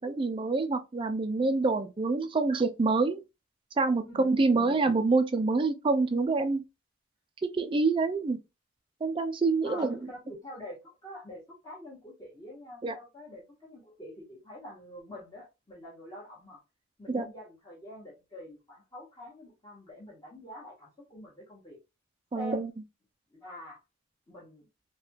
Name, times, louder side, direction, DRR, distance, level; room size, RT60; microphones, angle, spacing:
voice 1, 0.0-3.2 3.8-6.6 7.4-8.4 9.0-10.0 12.8-12.9 17.1-17.3 22.3-22.7, right 3 dB, 25° right, 0.3 m, -26 dB
voice 2, 4.1-4.9 9.6-16.6 17.0-21.8 22.3-22.6 23.3-23.8 24.3-24.7, equal, 20° left, 1.0 m, -46 dB
3.3 x 2.2 x 2.8 m
head